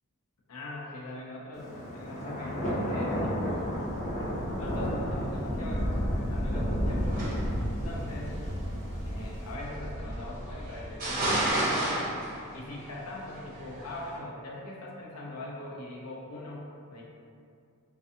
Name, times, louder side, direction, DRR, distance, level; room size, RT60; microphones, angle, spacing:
voice 1, 0.5-3.8 4.6-7.3 7.6-8.5 9.0-11.9 12.5-17.0, left 1 dB, 85° left, -4 dB, 0.5 m, -41 dB
Thunder, 1.5-11.4, equal, 35° left, 0.5 m, -32 dB
sound 1, 7.0-14.2, right 1 dB, 40° right, 0.7 m, -33 dB
2.5 x 2.3 x 2.5 m, 2.3 s
head